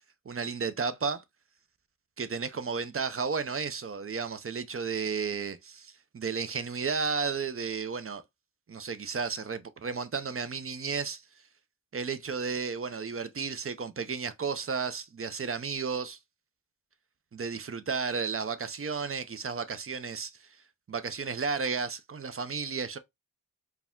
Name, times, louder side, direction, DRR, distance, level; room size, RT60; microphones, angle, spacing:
voice 1, 0.3-1.2 2.2-8.2 8.7-11.2 11.9-16.2 17.3-20.3 20.9-23.0, right 5 dB, 40° right, 0.6 m, -33 dB
4.7 x 2.3 x 3.6 m
wide cardioid pair, 65°, 34 cm